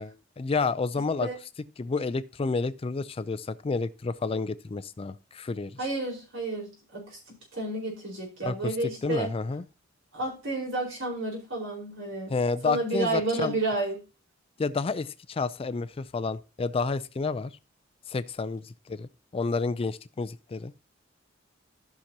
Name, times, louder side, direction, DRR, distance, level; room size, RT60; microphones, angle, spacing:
voice 1, 0.0-1.3 1.8-5.8 8.5-8.8 9.0-9.6 12.3-13.5 14.6-17.5 18.1-20.7, left 4 dB, 30° left, 0.4 m, -30 dB
voice 2, 5.8-7.2 7.5-9.3 10.1-12.4 12.6-14.0, right 2 dB, 80° right, 4.6 m, -31 dB
14.5 x 5.9 x 2.8 m
head